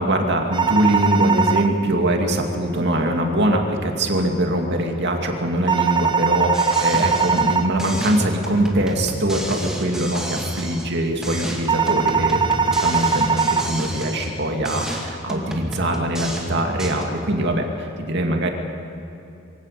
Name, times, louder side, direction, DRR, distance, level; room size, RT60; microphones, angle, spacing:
voice 1, 0.0-18.5, right 1 dB, 55° right, 2 dB, 2.5 m, -22 dB
sound 1, 0.5-1.7 5.7-7.7 11.7-13.7, right 5 dB, 25° right, 0.8 m, -20 dB
sound 2, 6.5-7.5 7.8-11.0 11.2-14.4 14.7-17.0, equal, 5° right, 2.3 m, -30 dB
23.5 x 17.0 x 6.8 m, 2.9 s
head